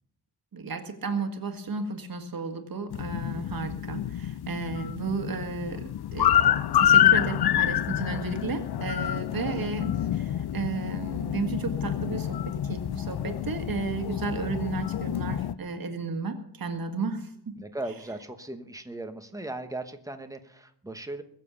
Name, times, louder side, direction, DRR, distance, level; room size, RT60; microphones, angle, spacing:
voice 1, 0.5-17.6, right 4 dB, 50° right, 6 dB, 1.8 m, -33 dB
sound 1, 2.9-15.5, left 11 dB, 60° left, 0.5 m, -27 dB
voice 2, 17.6-21.2, right 2 dB, 10° right, 7 dB, 1.1 m, -38 dB
21.5 x 7.6 x 7.0 m, 0.70 s
wide cardioid pair, 180°, 43 cm